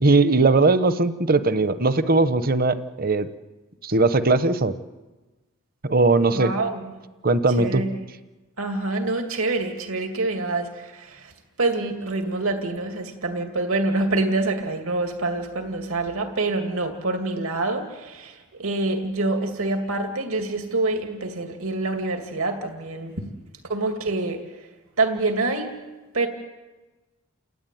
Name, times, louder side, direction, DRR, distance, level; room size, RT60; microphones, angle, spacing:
voice 1, 0.0-3.3 3.8-4.7 5.8-6.5 7.2-7.8, right 3 dB, 40° right, 12 dB, 0.9 m, -19 dB
voice 2, 6.3-6.9 7.6-7.9 8.6-11.3 11.6-23.2 23.7-24.7 25.0-25.7 26.1-26.3, right 2 dB, 80° right, 4 dB, 2.6 m, -26 dB
29.5 x 13.0 x 9.3 m, 1.2 s
head